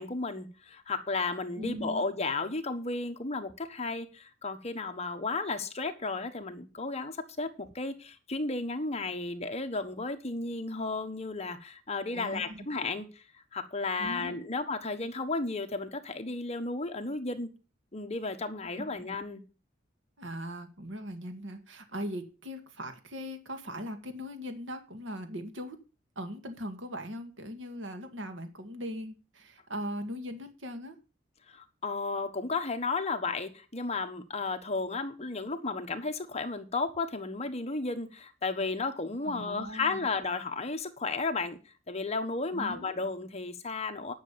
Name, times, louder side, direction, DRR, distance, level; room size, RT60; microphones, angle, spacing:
voice 1, 0.0-13.2 13.5-17.5 17.9-19.4 31.5-41.6 41.9-44.1, left 3 dB, 35° left, 7 dB, 1.3 m, -33 dB
voice 2, 1.5-2.0 12.1-12.7 14.0-14.5 18.8-18.9 20.2-25.8 26.2-31.0 39.2-40.1 42.5-43.0, equal, 75° right, 7 dB, 2.0 m, -40 dB
10.5 x 6.6 x 6.9 m, 0.33 s
head